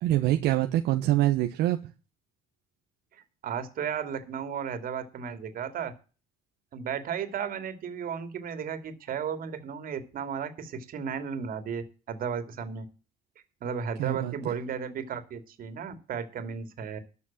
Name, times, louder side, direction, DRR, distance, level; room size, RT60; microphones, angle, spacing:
voice 1, 0.0-1.8 14.0-14.6, right 14 dB, 85° right, 5 dB, 1.1 m, -25 dB
voice 2, 3.1-5.9 6.7-12.8 13.6-17.0, right 7 dB, 60° right, 9 dB, 2.7 m, -34 dB
13.0 x 6.2 x 7.3 m, 0.35 s
cardioid pair, 110°, 17 cm